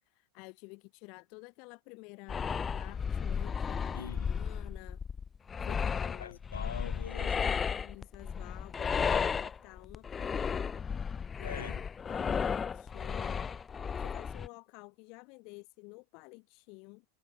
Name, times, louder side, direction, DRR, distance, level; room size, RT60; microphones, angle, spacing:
voice 1, 0.0-5.0 5.6-6.4 7.7-10.9 11.4-11.5 12.1-13.5 13.9-17.1, left 31 dB, 45° left, 2.1 m, -51 dB
sound 1, 2.3-14.5, left 6 dB, 20° left, 0.9 m, -34 dB
voice 2, 3.9-4.3 6.2-7.6 11.4-11.9, left 7 dB, 70° left, 4.3 m, -43 dB
figure-of-eight pair, 85°, 0 cm